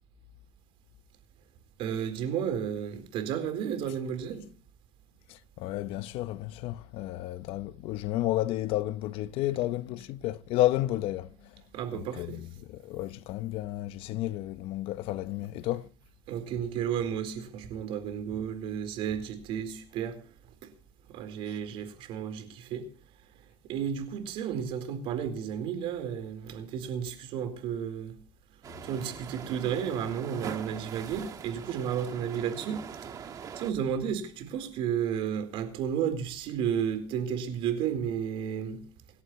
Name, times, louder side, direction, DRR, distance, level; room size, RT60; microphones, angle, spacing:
voice 1, 1.8-4.4 11.7-12.4 16.3-20.2 20.6-20.7 21.1-22.9 23.7-28.2 28.8-32.8 33.2-38.8, right 8 dB, 70° right, 4.2 m, -32 dB
voice 2, 5.3-11.6 11.9-15.9 21.5-21.6, left 15 dB, 75° left, 0.8 m, -32 dB
sound 1, 28.6-33.7, right 7 dB, 40° right, 1.7 m, -42 dB
28.0 x 11.5 x 3.2 m
cardioid pair, 150°, 10 cm